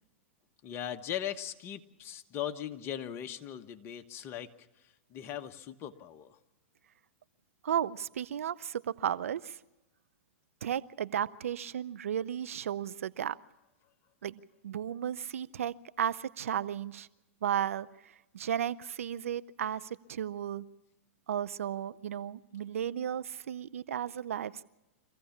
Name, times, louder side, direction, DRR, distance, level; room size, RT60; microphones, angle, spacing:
voice 1, 0.6-4.5 5.1-6.4, left 10 dB, 35° left, 7 dB, 1.3 m, -39 dB
voice 2, 7.6-9.6 10.6-13.4 14.2-17.1 17.4-17.9 18.3-20.7 21.3-24.6, right 9 dB, 75° right, 15 dB, 0.7 m, -34 dB
25.0 x 15.5 x 7.3 m, 1.0 s
hypercardioid pair, 115°, 7 cm